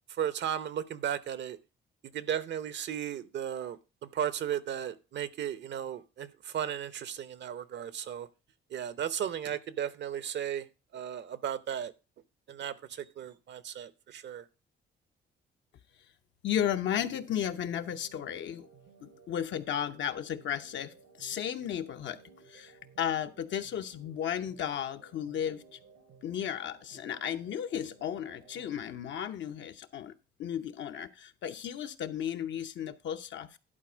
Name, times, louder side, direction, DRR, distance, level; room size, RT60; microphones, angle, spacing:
voice 1, 0.1-1.6 2.0-8.3 8.7-10.7 10.9-11.9 12.5-14.5, right 9 dB, 65° right, 0.8 m, -35 dB
voice 2, 16.4-18.7 19.0-22.2 22.5-25.8 26.2-33.6, left 9 dB, 70° left, 0.9 m, -34 dB
sound 1, 16.9-28.8, right 5 dB, 85° right, 2.9 m, -58 dB
11.0 x 4.3 x 6.2 m
cardioid pair, 90°, 20 cm